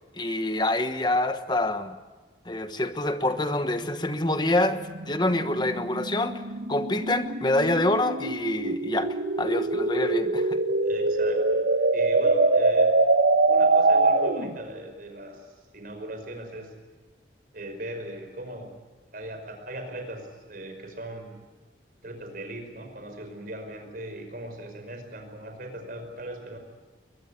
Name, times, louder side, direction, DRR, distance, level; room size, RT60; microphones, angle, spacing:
voice 1, 0.1-2.0 2.4-6.4 6.7-10.6, left 1 dB, 25° left, 9 dB, 1.2 m, -26 dB
sound 1, 3.2-14.6, right 3 dB, 75° right, 1.3 m, -24 dB
voice 2, 10.8-13.0 13.5-15.5 15.7-16.7 17.5-18.7 19.1-21.4 22.0-26.6, right 1 dB, 50° right, 4 dB, 5.4 m, -39 dB
22.5 x 21.0 x 8.4 m, 1.2 s
head